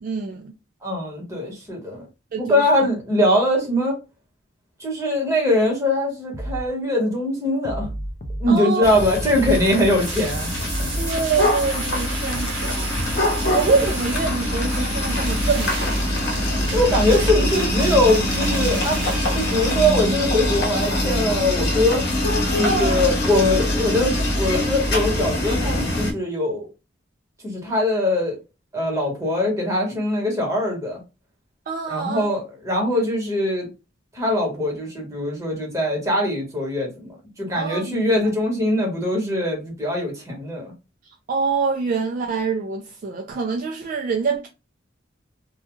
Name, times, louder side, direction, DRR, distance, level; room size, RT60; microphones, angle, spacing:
voice 1, 0.0-0.5 2.3-2.6 8.5-8.9 11.0-13.0 13.5-15.9 22.6-23.0 31.7-32.3 37.6-38.3 41.3-44.5, right 4 dB, 45° right, 0.3 m, -25 dB
voice 2, 0.8-2.0 2.3-4.0 4.8-7.9 8.4-10.5 16.7-19.0 19.3-22.0 22.5-26.7 27.4-28.4 28.7-31.0 31.9-33.7 34.1-37.1 37.4-40.7, left 1 dB, 15° right, 1.0 m, -22 dB
sound 1, 6.3-6.7 7.6-8.5 9.3-9.7 10.6-11.6 12.3-12.7 13.6-14.6 15.3-15.7 16.6-17.6, right 1 dB, 40° left, 0.4 m, -30 dB
sound 2, 8.8-26.1, left 1 dB, 60° left, 0.9 m, -23 dB
sound 3, 10.0-19.8, right 4 dB, 75° right, 0.8 m, -34 dB
2.2 x 2.2 x 3.0 m
head